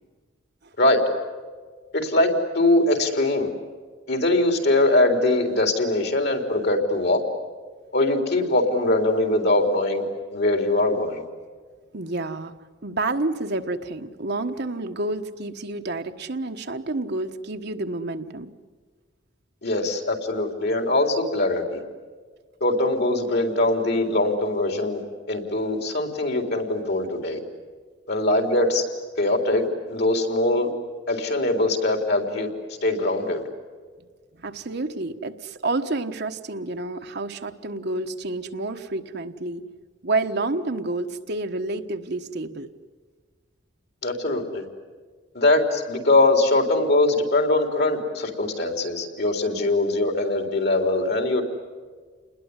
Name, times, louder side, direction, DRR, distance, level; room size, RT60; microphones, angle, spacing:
voice 1, 1.9-3.5 4.1-7.2 7.9-10.0 10.3-11.3 19.6-21.8 22.6-25.0 25.3-27.4 28.1-28.8 29.2-30.7 31.1-32.5 32.8-33.4 44.0-44.6 45.3-51.4, left 2 dB, 60° left, 5 dB, 3.9 m, -22 dB
voice 2, 11.9-12.5 12.8-18.5 34.4-39.6 40.0-42.7, right 2 dB, 60° right, 6 dB, 1.3 m, -29 dB
29.0 x 20.5 x 9.8 m, 1.5 s
head